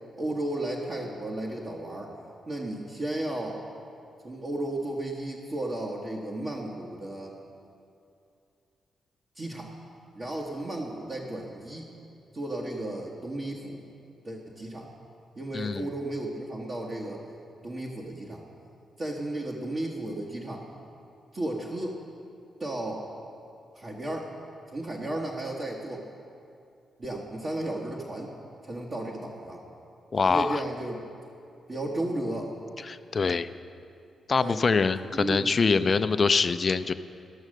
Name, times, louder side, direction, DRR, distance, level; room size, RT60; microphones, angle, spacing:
voice 1, 0.2-2.1 2.5-3.6 4.2-7.4 9.3-9.7 10.1-11.9 12.3-13.8 14.2-14.9 15.4-17.2 17.6-18.4 19.0-20.6 21.3-22.0 22.6-23.0 23.7-24.3 24.7-26.0 27.0-28.3 28.6-29.6 30.3-31.0 31.7-32.5 34.4-34.6 35.1-36.0, right 1 dB, 45° right, -3 dB, 1.3 m, -34 dB
voice 2, 15.5-15.9 30.1-30.6 32.8-33.5 34.3-36.9, left 4 dB, 50° left, 13 dB, 0.4 m, -24 dB
14.0 x 6.5 x 6.4 m, 2.5 s
supercardioid pair, 50°, 0 cm